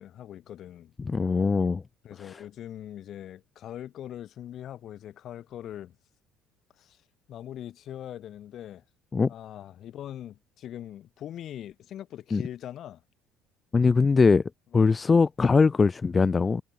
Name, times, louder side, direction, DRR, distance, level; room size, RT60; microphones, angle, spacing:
voice 1, 0.0-0.9 2.0-6.0 6.8-7.0 7.3-8.8 9.3-13.0 14.7-14.8, left 11 dB, 45° left, 0.7 m, -41 dB
voice 2, 1.0-1.8 9.1-9.3 12.3-12.4 13.7-14.4 14.7-16.6, left 4 dB, 20° left, 0.3 m, -21 dB
cardioid pair, 155°, 0 cm